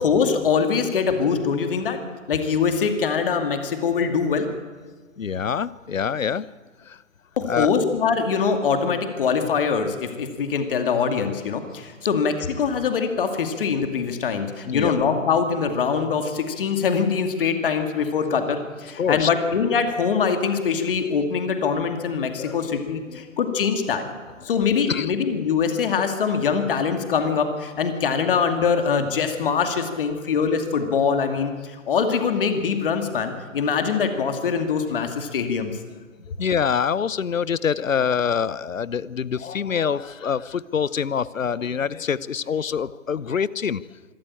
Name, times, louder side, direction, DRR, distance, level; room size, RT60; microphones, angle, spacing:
voice 1, 0.0-2.0 2.3-4.5 7.4-24.0 24.4-35.7, left 6 dB, 40° left, 7 dB, 2.5 m, -23 dB
voice 2, 5.2-6.5 6.8-7.0 7.5-7.7 14.6-14.9 19.0-19.3 22.4-22.6 23.1-23.2 24.9-25.1 36.4-43.8, left 7 dB, 75° left, 20 dB, 0.9 m, -25 dB
25.5 x 13.0 x 8.8 m, 1.4 s
figure-of-eight pair, 145°, 40 cm